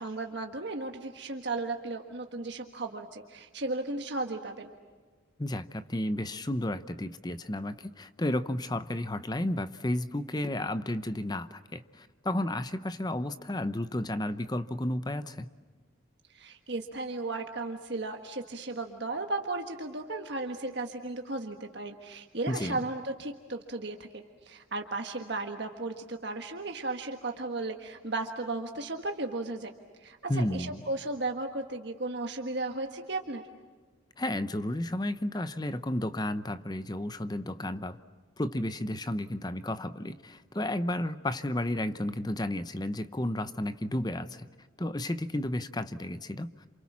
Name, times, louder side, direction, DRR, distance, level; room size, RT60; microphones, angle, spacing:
voice 1, 0.0-4.7 16.3-29.7 30.0-33.4, right 2 dB, 55° right, 4 dB, 1.5 m, -35 dB
voice 2, 5.4-15.5 22.5-22.8 30.3-30.8 34.2-38.0 38.4-44.5 44.8-46.5, left 1 dB, 20° left, 12 dB, 0.8 m, -32 dB
29.0 x 27.5 x 7.3 m, 1.4 s
head